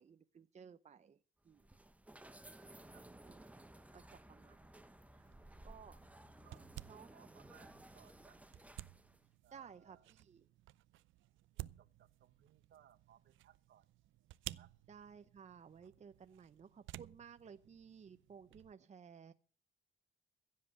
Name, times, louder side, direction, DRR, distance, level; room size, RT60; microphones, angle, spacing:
voice 1, 0.0-1.7 2.5-2.9 3.2-3.5 3.9-4.8 5.1-5.3 5.6-6.0 6.9-7.1 9.5-10.5 14.9-19.3, right 7 dB, 35° right, 10 dB, 0.7 m, -57 dB
sound 1, 1.4-9.3, right 1 dB, 5° right, 0.9 m, -58 dB
sound 2, 5.2-18.7, right 16 dB, 80° right, 0.5 m, -55 dB
voice 2, 7.1-8.4 9.4-10.1 11.5-13.9 14.5-14.7 16.3-16.5, right 10 dB, 65° right, 13 dB, 1.2 m, -66 dB
16.0 x 7.6 x 6.4 m, 0.39 s
cardioid pair, 90°, 20 cm